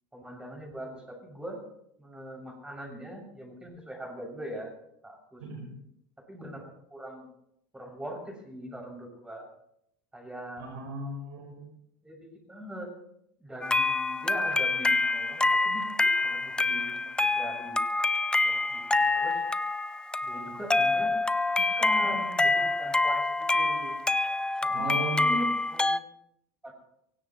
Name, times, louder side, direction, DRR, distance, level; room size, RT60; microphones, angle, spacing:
voice 1, 0.1-1.6 2.0-4.7 5.0-5.4 6.2-7.3 7.7-9.5 10.1-10.7 12.0-12.9 13.4-17.8 18.4-19.4 20.2-21.2 21.8-24.0 24.6-26.0 26.6-26.7, equal, 10° right, 1 dB, 7.2 m, -41 dB
voice 2, 5.4-5.7 10.6-11.7 24.7-25.5, right 2 dB, 80° right, 1 dB, 4.8 m, -36 dB
sound 1, 13.6-26.0, left 2 dB, 10° left, 0.6 m, -26 dB
23.5 x 17.5 x 3.2 m, 0.74 s
supercardioid pair, 110°, 11 cm